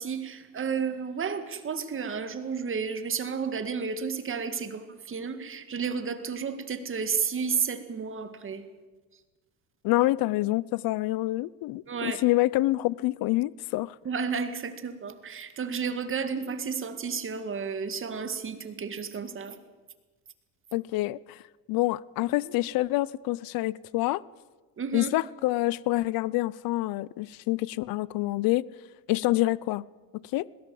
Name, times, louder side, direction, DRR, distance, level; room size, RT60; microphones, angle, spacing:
voice 1, 0.0-8.6 11.9-12.2 14.0-19.6 24.8-25.1, right 6 dB, 30° right, 2.0 m, -32 dB
voice 2, 9.8-14.0 20.7-21.4 21.7-24.2 24.9-28.7 29.1-29.8 30.3-30.5, left 18 dB, 55° left, 0.6 m, -27 dB
21.0 x 18.0 x 7.7 m
cardioid pair, 125°, 41 cm